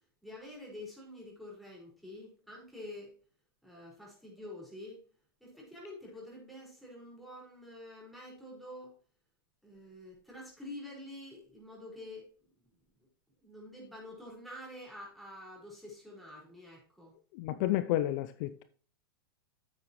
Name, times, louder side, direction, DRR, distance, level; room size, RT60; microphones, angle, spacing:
voice 1, 0.2-3.2 3.6-5.1 5.4-9.0 9.6-12.7 13.4-17.1 17.5-17.6, left 1 dB, ahead, 5.1 m, -48 dB
voice 2, 17.3-18.6, left 14 dB, 50° left, 0.5 m, -31 dB
8.7 x 8.4 x 3.1 m
hypercardioid pair, 115°, 13 cm